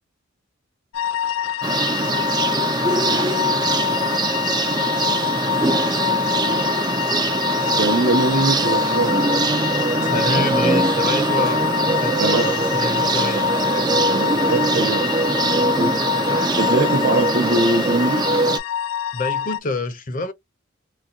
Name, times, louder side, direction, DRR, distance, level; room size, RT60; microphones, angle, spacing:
sound 1, 0.9-19.6, left 9 dB, 75° left, 0.4 m, -25 dB
sound 2, 1.6-18.6, right 3 dB, 20° right, 0.4 m, -22 dB
voice 1, 7.8-9.2 12.2-12.5 14.1-15.1 15.8-15.9 16.5-18.5, right 2 dB, 55° right, 0.7 m, -22 dB
voice 2, 10.0-13.5 19.1-20.3, left 2 dB, 45° left, 0.7 m, -27 dB
4.1 x 2.3 x 2.3 m
head